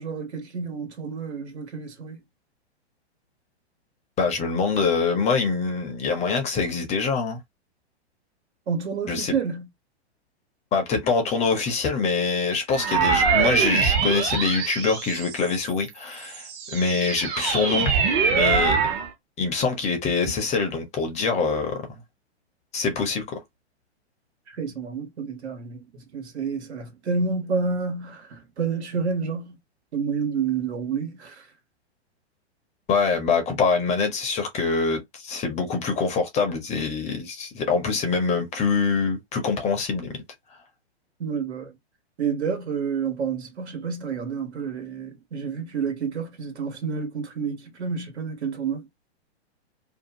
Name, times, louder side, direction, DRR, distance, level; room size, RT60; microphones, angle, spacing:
voice 1, 0.0-2.2 8.7-9.7 24.5-29.6 29.9-31.5 41.2-41.7 42.2-48.9, right 5 dB, 75° right, 1.3 m, -29 dB
voice 2, 4.2-7.4 9.1-9.3 10.7-18.0 18.3-18.8 19.4-22.0 22.7-23.4 32.9-40.2, left 4 dB, 20° left, 0.6 m, -24 dB
sound 1, 12.7-15.7 16.2-19.1, right 6 dB, 50° right, 1.1 m, -23 dB
2.6 x 2.4 x 2.8 m
hypercardioid pair, 125°, 34 cm